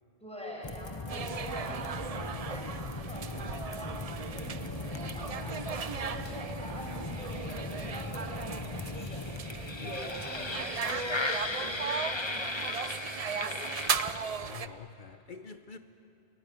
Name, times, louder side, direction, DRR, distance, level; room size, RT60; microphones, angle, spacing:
voice 1, 0.2-5.6 6.0-9.2 9.8-13.7, equal, 5° left, 6.4 m, -44 dB
sound 1, 0.6-14.5, left 3 dB, 30° left, 1.0 m, -38 dB
sound 2, 1.1-14.7, right 6 dB, 40° right, 0.7 m, -37 dB
voice 2, 14.3-15.8, left 5 dB, 55° left, 1.0 m, -46 dB
29.5 x 18.5 x 9.5 m
omnidirectional pair, 1.0 m